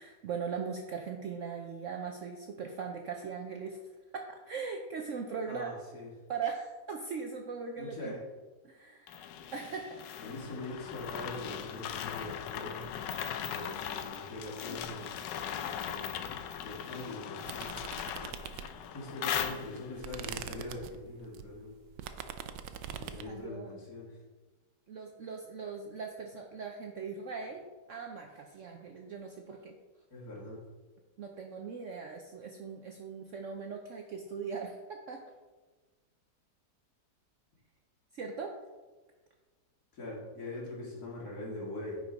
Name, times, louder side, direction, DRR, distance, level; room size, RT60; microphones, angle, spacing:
voice 1, 0.0-3.8 4.1-5.7 6.3-8.1 8.6-10.0 19.5-19.6 23.2-23.8 24.9-27.6 27.9-29.7 31.2-35.2 38.1-38.6, right 5 dB, 65° right, 3 dB, 0.8 m, -40 dB
voice 2, 5.5-6.1 7.8-8.2 10.2-12.8 13.5-15.2 15.5-18.0 18.8-21.8 22.8-24.2 30.1-30.6 39.9-42.0, left 2 dB, 60° left, -4 dB, 2.6 m, -42 dB
sound 1, 9.1-20.0, left 9 dB, 85° left, 1.2 m, -39 dB
sound 2, 17.5-19.0 19.4-23.3, right 9 dB, 85° right, 1.2 m, -43 dB
9.6 x 4.9 x 3.9 m, 1.3 s
omnidirectional pair, 1.9 m